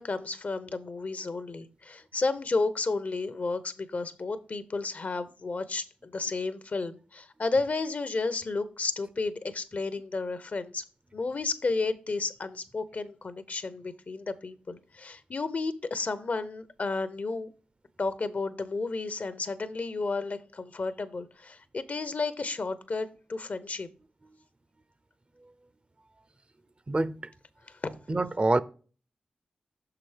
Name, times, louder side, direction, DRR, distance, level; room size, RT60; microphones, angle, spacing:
voice 1, 0.0-10.8 11.1-17.5 18.0-23.9 27.8-28.0, left 3 dB, 55° left, 0.7 m, -32 dB
voice 2, 26.9-27.2 28.1-28.6, right 2 dB, 35° right, 0.5 m, -25 dB
6.3 x 5.8 x 3.3 m
cardioid pair, 40°, 3 cm